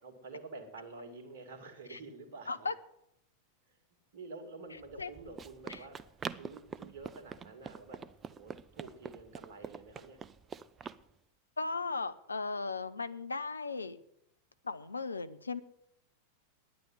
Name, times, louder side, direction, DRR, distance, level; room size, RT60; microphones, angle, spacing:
voice 1, 0.0-2.7 3.7-3.8 4.1-6.0 6.3-8.0 8.3-10.2, right 3 dB, 55° right, 6 dB, 2.5 m, -49 dB
Run, 4.8-11.0, right 6 dB, 20° right, 0.5 m, -45 dB
voice 2, 11.6-14.0 14.6-15.6, left 4 dB, 80° left, 12 dB, 0.7 m, -36 dB
10.0 x 9.5 x 9.2 m, 0.77 s
figure-of-eight pair, 90°, 0 cm